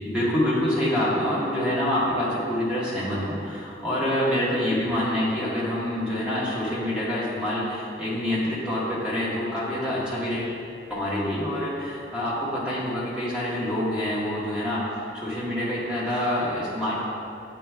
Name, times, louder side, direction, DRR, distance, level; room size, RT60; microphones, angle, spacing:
voice 1, 0.0-10.5 10.9-17.0, left 1 dB, 5° right, -8 dB, 1.3 m, -26 dB
8.3 x 4.5 x 3.5 m, 2.6 s
head